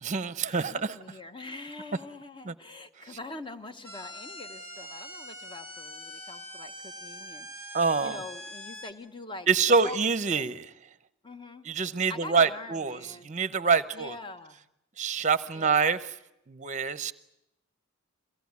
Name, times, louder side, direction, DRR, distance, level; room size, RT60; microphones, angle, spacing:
voice 1, 0.0-0.9 2.4-2.5 7.7-8.2 9.5-10.7 11.6-14.1 15.0-16.0 16.5-17.1, right 5 dB, 35° right, 15 dB, 0.8 m, -26 dB
voice 2, 0.6-10.0 10.3-10.5 11.2-11.7 11.9-13.3 13.9-14.6 15.5-15.9, left 2 dB, 20° left, 9 dB, 1.1 m, -44 dB
sound 1, 3.8-8.9, equal, 45° left, 2.5 m, -43 dB
23.5 x 17.0 x 9.5 m, 0.87 s
head